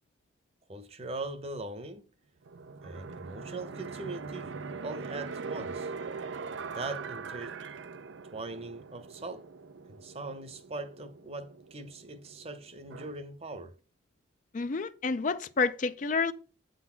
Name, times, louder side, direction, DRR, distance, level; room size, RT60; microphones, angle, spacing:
voice 1, 0.7-2.0 2.8-5.9 6.7-7.5 8.3-9.5 9.9-13.7, right 2 dB, 35° right, 0.8 m, -40 dB
sound 1, 2.5-13.1, right 4 dB, 80° right, 0.5 m, -42 dB
voice 2, 14.5-16.3, left 4 dB, 45° left, 0.4 m, -29 dB
8.1 x 4.0 x 5.7 m
head